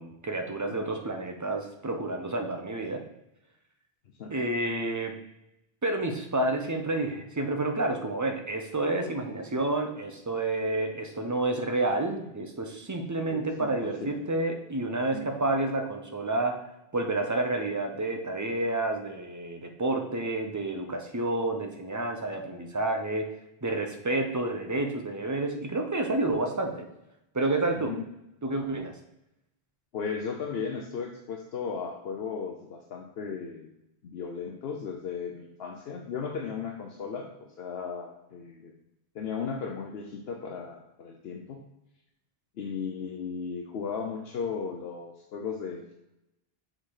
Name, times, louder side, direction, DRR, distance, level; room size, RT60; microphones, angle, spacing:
voice 1, 0.0-3.0 4.3-5.2 5.8-16.6 16.9-23.3 23.6-26.8 27.3-27.9 28.4-28.9, right 2 dB, 20° right, 3 dB, 0.7 m, -29 dB
voice 2, 13.3-14.2 15.1-15.3 27.8-28.1 29.9-33.7 34.0-38.7 39.1-41.6 42.6-45.9, left 6 dB, 70° left, 2 dB, 0.9 m, -36 dB
6.6 x 3.8 x 4.8 m, 0.89 s
omnidirectional pair, 1.1 m